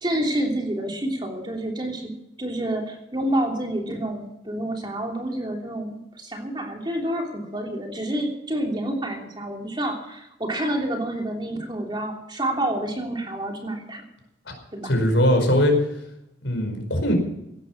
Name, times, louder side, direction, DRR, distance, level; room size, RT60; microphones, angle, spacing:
voice 1, 0.0-2.1 2.4-14.0 14.7-14.9, right 1 dB, 25° right, 1 dB, 3.1 m, -28 dB
voice 2, 14.8-15.8 16.4-17.1, left 1 dB, 85° left, 5 dB, 5.0 m, -20 dB
16.5 x 11.5 x 6.0 m, 0.86 s
head